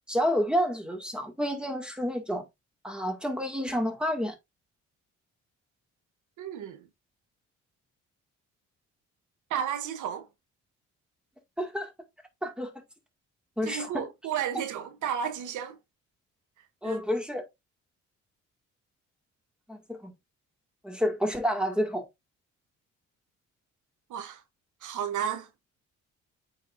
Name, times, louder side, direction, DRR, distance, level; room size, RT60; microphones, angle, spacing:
voice 1, 0.1-2.4 2.8-4.4 11.6-11.9 12.4-12.7 13.6-14.1 16.8-17.4 19.7-20.1 20.8-22.1, equal, 5° right, 2.1 m, -29 dB
voice 2, 6.4-6.8 9.5-10.3 13.6-15.8 16.8-17.0 24.1-24.4 24.8-25.5, right 9 dB, 75° right, 1.0 m, -32 dB
9.1 x 4.1 x 2.6 m
cardioid pair, 90°, 30 cm